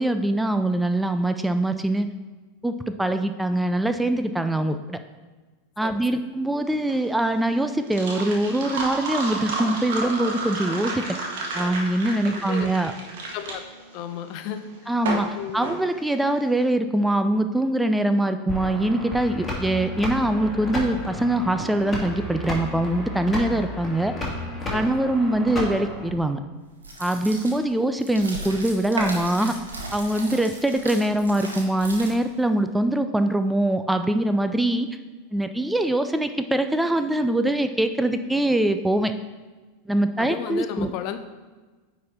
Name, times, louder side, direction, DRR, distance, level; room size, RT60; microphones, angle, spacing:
voice 1, 0.0-2.1 2.6-5.0 5.8-11.0 11.5-12.9 14.9-24.1 24.7-26.4 27.0-29.5 29.9-34.9 35.3-39.1 39.9-40.9, right 1 dB, 5° right, 8 dB, 0.5 m, -23 dB
voice 2, 5.8-6.2 12.5-12.7 13.3-13.6 13.9-14.7 15.3-15.6 24.7-24.8 40.2-41.2, left 10 dB, 50° left, 9 dB, 0.6 m, -33 dB
sound 1, 6.7-16.5, right 3 dB, 65° right, 1.7 m, -32 dB
sound 2, 18.5-26.1, left 2 dB, 15° left, 2.3 m, -32 dB
sound 3, 26.8-32.4, right 2 dB, 90° right, 1.5 m, -36 dB
9.3 x 4.2 x 4.3 m, 1.3 s
hypercardioid pair, 90°, 0 cm